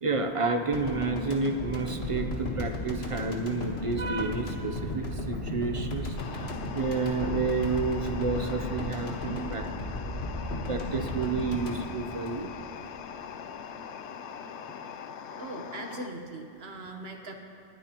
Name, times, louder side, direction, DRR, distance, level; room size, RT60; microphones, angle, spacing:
voice 1, 0.0-9.7 10.0-12.5 14.6-14.7, right 4 dB, 35° right, 5 dB, 0.7 m, -30 dB
sound 1, 0.7-12.9 13.2-13.4, left 1 dB, 70° left, 1.7 m, -35 dB
sound 2, 6.2-16.1, left 7 dB, 85° left, 0.9 m, -41 dB
voice 2, 15.4-17.3, right 2 dB, 65° right, 3 dB, 1.4 m, -40 dB
19.5 x 12.0 x 3.0 m, 2.7 s
omnidirectional pair, 1.1 m